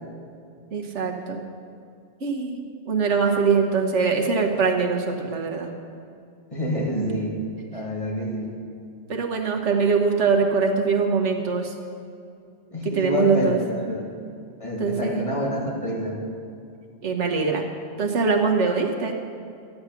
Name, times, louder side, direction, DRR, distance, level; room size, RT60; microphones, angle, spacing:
voice 1, 0.7-1.4 2.2-5.7 7.0-7.1 9.1-11.7 12.9-13.6 13.9-14.0 14.8-15.2 17.0-17.6 18.0-19.1, right 5 dB, 85° right, 3 dB, 1.5 m, -23 dB
voice 2, 6.5-7.4 7.7-8.6 12.7-14.1 14.6-16.2, left 1 dB, 30° left, -3 dB, 2.0 m, -28 dB
13.0 x 9.5 x 5.9 m, 2.4 s
omnidirectional pair, 1.2 m